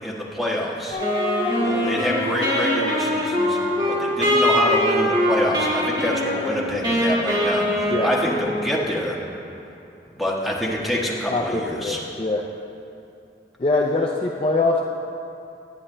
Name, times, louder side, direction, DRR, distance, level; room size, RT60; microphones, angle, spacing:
voice 1, 0.0-1.0 1.6-3.6 4.0-9.2 10.1-12.0, equal, ahead, -5 dB, 1.4 m, -26 dB
sound 1, 0.9-6.6, left 1 dB, 45° left, 1.7 m, -32 dB
Wind instrument woodwind instrument, 1.0-8.7, equal, 25° right, 1.7 m, -22 dB
voice 2, 11.3-12.4 13.6-14.8, left 3 dB, 30° left, 0 dB, 0.4 m, -23 dB
19.0 x 9.9 x 2.2 m, 2.7 s
head